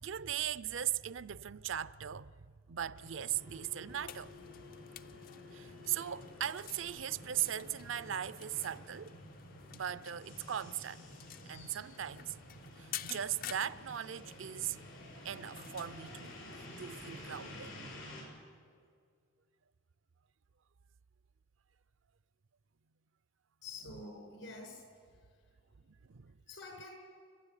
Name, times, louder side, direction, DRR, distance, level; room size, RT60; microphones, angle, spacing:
voice 1, 0.0-4.3 5.5-9.2 9.7-11.0 11.4-12.3 12.8-14.8 15.2-16.3 16.8-17.8 25.9-26.4, right 10 dB, 70° right, 0.5 m, -39 dB
sound 1, 2.9-18.2, left 1 dB, 90° left, 7.6 m, -51 dB
sound 2, 4.0-17.7, left 9 dB, 45° left, 0.5 m, -51 dB
voice 2, 23.6-25.6 26.5-26.9, left 3 dB, 75° left, 6.8 m, -49 dB
30.0 x 13.0 x 9.9 m
head